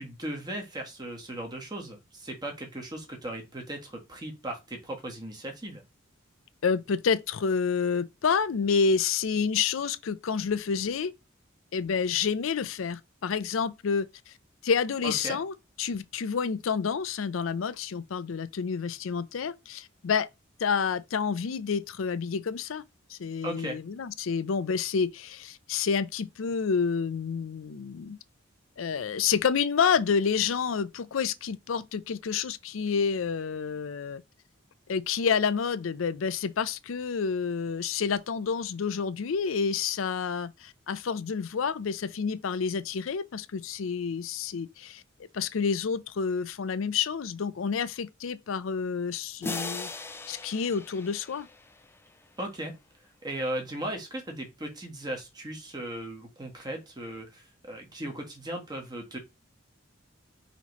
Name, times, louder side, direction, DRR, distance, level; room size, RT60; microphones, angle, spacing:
voice 1, 0.0-5.8 15.0-15.4 23.4-23.8 52.4-52.7 53.2-59.2, right 1 dB, 20° right, 1.2 m, -37 dB
voice 2, 6.6-11.1 11.7-14.3 14.6-20.3 20.6-22.8 23.1-28.2 28.8-34.2 34.9-45.0 45.3-49.9 50.3-51.5, left 6 dB, 75° left, 0.5 m, -29 dB
sound 1, 49.4-52.2, left 3 dB, 10° left, 0.3 m, -39 dB
5.7 x 3.0 x 3.0 m
head